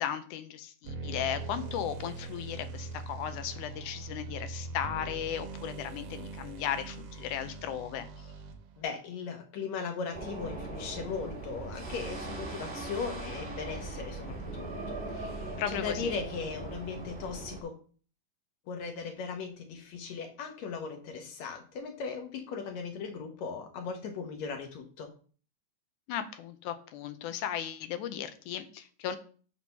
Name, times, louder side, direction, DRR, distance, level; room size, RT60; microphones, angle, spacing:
voice 1, 0.0-8.3 15.6-16.1 26.1-29.2, left 9 dB, 85° left, 10 dB, 2.1 m, -36 dB
sound 1, 0.8-8.8, right 3 dB, 75° right, 2.1 m, -41 dB
voice 2, 8.8-17.8 18.7-25.1, left 5 dB, 70° left, 4 dB, 2.0 m, -38 dB
sound 2, 10.1-17.6, right 2 dB, 25° right, 1.4 m, -39 dB
6.1 x 4.4 x 5.5 m, 0.42 s
omnidirectional pair, 3.6 m